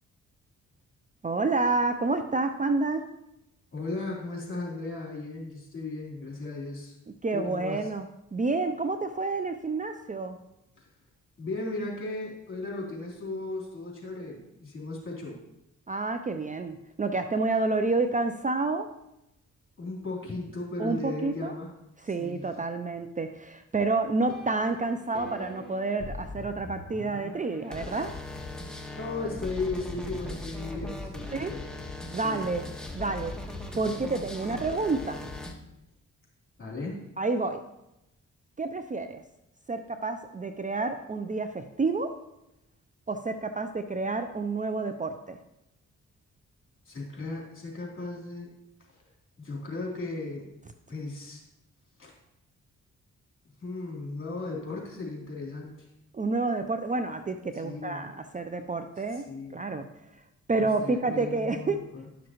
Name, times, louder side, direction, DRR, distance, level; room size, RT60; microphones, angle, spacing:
voice 1, 1.2-3.0 7.2-8.1 8.3-10.4 15.9-18.9 20.8-21.5 22.0-28.1 31.3-31.5 32.1-32.6 32.9-33.3 33.7-35.2 37.2-37.6 38.6-39.2 39.7-42.1 43.1-45.4 56.1-59.9 60.5-61.8, right 3 dB, 25° right, 8 dB, 0.5 m, -29 dB
voice 2, 3.7-6.9 7.3-7.9 10.8-10.9 11.4-15.4 19.8-21.7 22.1-22.5 29.0-31.7 32.2-32.4 36.6-37.0 46.9-48.5 49.4-50.5 50.9-51.4 52.0-52.1 53.6-55.9 57.5-58.1 59.1-59.6 60.6-62.0, left 3 dB, 40° left, -3 dB, 3.5 m, -36 dB
sound 1, 24.1-35.5, left 1 dB, ahead, 1.4 m, -40 dB
11.5 x 6.2 x 3.0 m, 0.86 s
cardioid pair, 60°, 31 cm